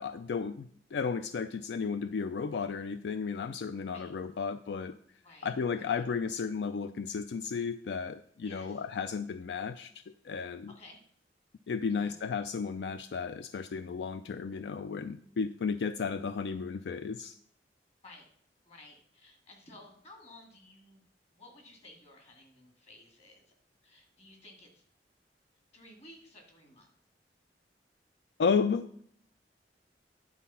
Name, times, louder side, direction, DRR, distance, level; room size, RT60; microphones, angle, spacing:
voice 1, 0.0-5.0 5.4-9.9 10.2-10.7 11.7-17.4 28.4-28.9, left 5 dB, 75° left, 11 dB, 0.4 m, -33 dB
voice 2, 5.2-6.1 8.4-8.9 10.7-11.0 11.9-12.2 18.0-18.3 18.7-21.0 21.3-23.5 23.8-24.8 25.7-26.9, left 2 dB, 40° left, 2 dB, 2.2 m, -55 dB
10.5 x 4.2 x 5.6 m, 0.62 s
head